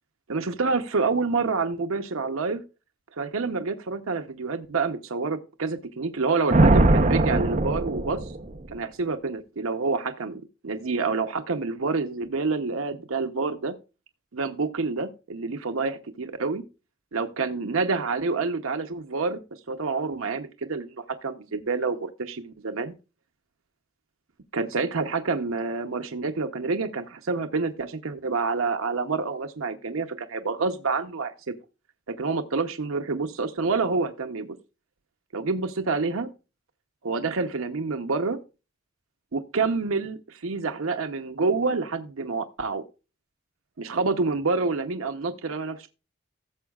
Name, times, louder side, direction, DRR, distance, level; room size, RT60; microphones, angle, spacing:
voice 1, 0.3-2.6 3.2-8.4 8.7-13.7 14.3-16.6 17.1-19.4 19.7-22.9 24.5-31.5 32.1-34.5 35.3-36.3 37.0-38.4 39.3-42.8 43.8-45.9, right 4 dB, 90° right, 7 dB, 0.8 m, -28 dB
Thunder, 6.5-8.7, right 2 dB, 35° right, 0.8 m, -20 dB
16.0 x 7.1 x 2.3 m, 0.30 s
head